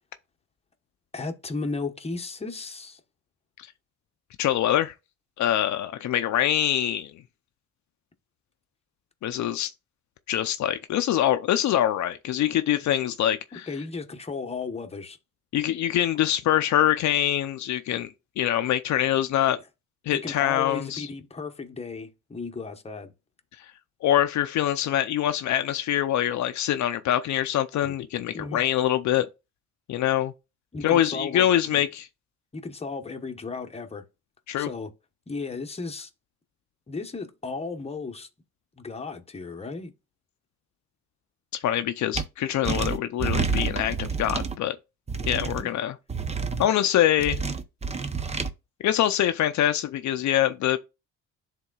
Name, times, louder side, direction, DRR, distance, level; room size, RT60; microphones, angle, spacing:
voice 1, 1.1-3.0 13.5-15.2 20.1-23.1 27.8-27.9 28.3-28.6 30.7-31.9 32.5-34.0 34.6-34.9 35.3-36.1 36.9-38.3 38.8-39.9 45.6-45.7, left 4 dB, 20° left, 1.1 m, -35 dB
voice 2, 4.4-4.9 5.4-7.1 9.2-9.7 10.3-13.7 15.5-19.6 20.1-21.1 24.0-29.3 29.9-30.3 30.8-32.1 34.5-34.7 41.5-44.8 45.3-45.9 46.6-47.4 48.8-50.8, left 11 dB, 70° left, 0.6 m, -24 dB
sound 1, 42.1-42.2 42.6-44.5 45.1-45.6 46.1-46.7 47.2-48.5, right 5 dB, 20° right, 0.7 m, -28 dB
11.0 x 3.7 x 2.3 m
cardioid pair, 90°, 30 cm